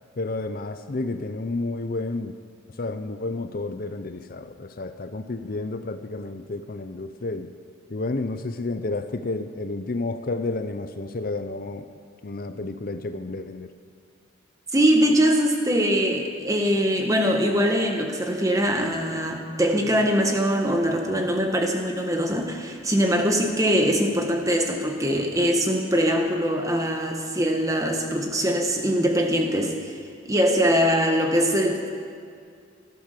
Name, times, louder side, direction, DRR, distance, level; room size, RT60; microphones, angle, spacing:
voice 1, 0.2-2.4 2.7-7.5 7.9-11.8 12.2-13.7, left 2 dB, 45° left, 9 dB, 0.6 m, -31 dB
voice 2, 14.7-30.0 30.3-31.9, equal, 15° right, 3 dB, 1.5 m, -22 dB
16.5 x 12.5 x 6.8 m, 2.2 s
head